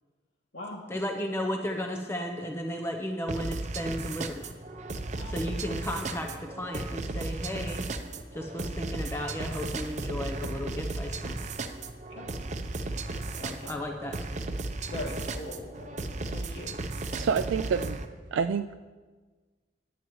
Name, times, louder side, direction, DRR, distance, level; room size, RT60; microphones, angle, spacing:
voice 1, 0.9-4.5 5.3-11.4 13.4-14.4 17.2-17.3, left 1 dB, 15° left, 3 dB, 0.7 m, -34 dB
sound 1, 3.3-18.1, right 2 dB, 40° right, 0.7 m, -35 dB
voice 2, 5.1-5.8 12.1-12.3 13.1-13.7 14.9-16.7, left 1 dB, 75° left, -2 dB, 2.5 m, -41 dB
voice 3, 17.1-18.0 18.3-18.7, right 6 dB, 80° right, 8 dB, 0.3 m, -27 dB
17.0 x 10.5 x 3.1 m, 1.4 s
head